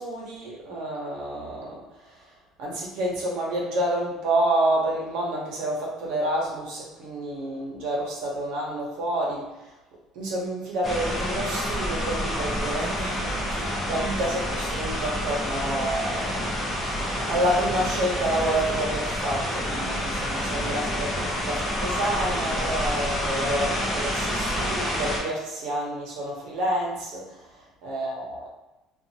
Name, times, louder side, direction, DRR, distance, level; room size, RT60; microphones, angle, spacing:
voice 1, 0.0-1.8 2.1-2.2 2.6-9.7 10.1-28.5, right 1 dB, 75° right, -3 dB, 0.9 m, -29 dB
sound 1, 10.8-25.2, equal, 15° left, 0.8 m, -28 dB
2.6 x 2.5 x 2.8 m, 1.0 s
cardioid pair, 160°, 0 cm